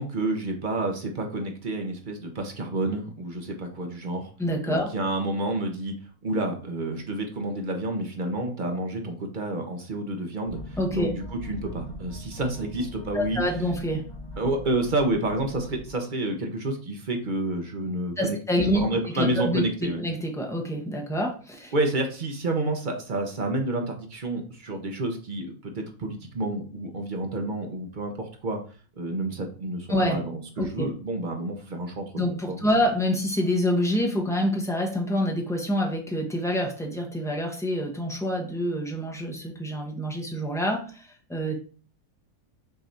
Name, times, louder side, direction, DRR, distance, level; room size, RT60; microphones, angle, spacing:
voice 1, 0.0-4.3 4.7-5.9 6.2-13.4 14.4-20.0 21.7-28.6 29.0-32.7, right 2 dB, 40° right, 3 dB, 0.8 m, -29 dB
voice 2, 4.4-4.9 10.8-11.1 13.1-14.1 18.2-18.8 19.2-21.7 29.9-30.2 30.6-30.9 32.1-41.5, equal, 5° left, 0 dB, 0.7 m, -27 dB
sound 1, 10.5-15.9, equal, 85° left, 2.8 m, -41 dB
6.0 x 3.2 x 2.6 m, 0.38 s
omnidirectional pair, 1.5 m